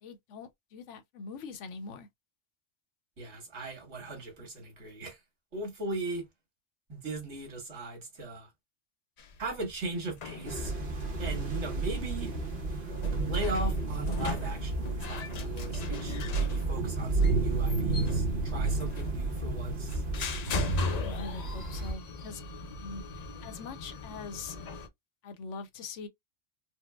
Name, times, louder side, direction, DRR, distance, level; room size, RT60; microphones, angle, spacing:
voice 1, 0.0-2.1 21.0-22.4 22.8-23.0 23.4-24.6 25.2-26.1, left 4 dB, 80° left, 1.0 m, -42 dB
voice 2, 3.2-5.2 5.5-6.2 6.9-8.5 9.4-10.7 11.2-12.3 13.3-20.0, right 2 dB, 70° right, 1.7 m, -38 dB
sound 1, 9.2-24.9, left 2 dB, 55° left, 0.4 m, -39 dB
sound 2, 10.4-21.9, right 3 dB, 50° right, 1.1 m, -31 dB
4.4 x 2.1 x 2.2 m
omnidirectional pair, 1.2 m